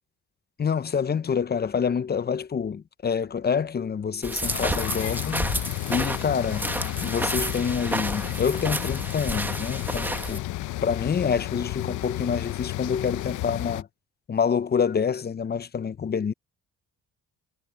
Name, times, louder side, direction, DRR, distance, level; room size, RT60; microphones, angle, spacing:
voice 1, 0.6-5.5 5.9-6.7 7.0-10.5 10.8-13.9 14.3-16.3, left 6 dB, 35° left, 0.7 m, -27 dB
sound 1, 4.2-10.4, right 1 dB, 5° right, 1.2 m, -31 dB
sound 2, 4.4-13.8, left 16 dB, 80° left, 0.8 m, -32 dB
cardioid pair, 90°, 30 cm